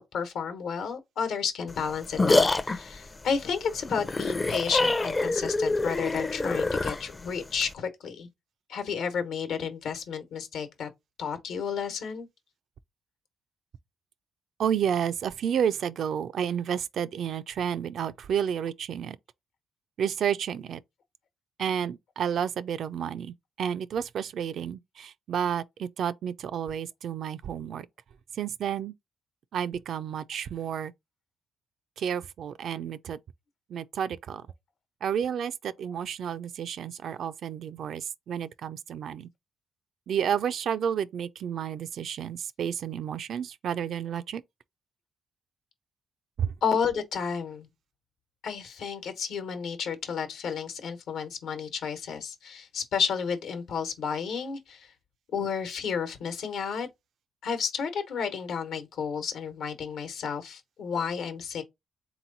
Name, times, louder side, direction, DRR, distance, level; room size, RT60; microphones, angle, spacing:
voice 1, 0.1-8.3 8.7-10.9 11.2-12.3 35.9-36.0 46.6-47.7 48.4-54.9 55.3-56.9 57.4-61.6, left 6 dB, 75° left, 1.1 m, -31 dB
sound 1, 1.7-7.7, left 2 dB, 25° left, 0.4 m, -26 dB
voice 2, 14.6-19.2 20.0-20.8 21.6-27.9 28.3-28.9 29.5-30.9 32.0-33.2 33.7-34.4 35.0-39.3 40.1-44.4 46.4-46.5, right 8 dB, 65° right, 0.3 m, -31 dB
3.8 x 2.9 x 3.9 m
cardioid pair, 90°, 0 cm